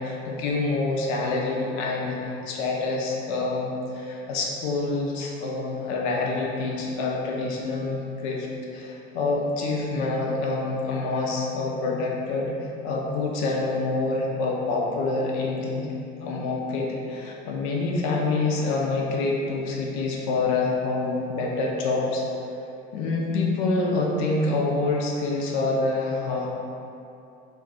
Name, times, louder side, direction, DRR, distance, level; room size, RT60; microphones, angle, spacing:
voice 1, 0.0-8.0 8.2-8.5 8.7-15.9 16.2-22.2 22.9-26.5, left 3 dB, 60° left, -2 dB, 0.6 m, -26 dB
2.5 x 2.3 x 3.9 m, 2.7 s
figure-of-eight pair, 55°, 31 cm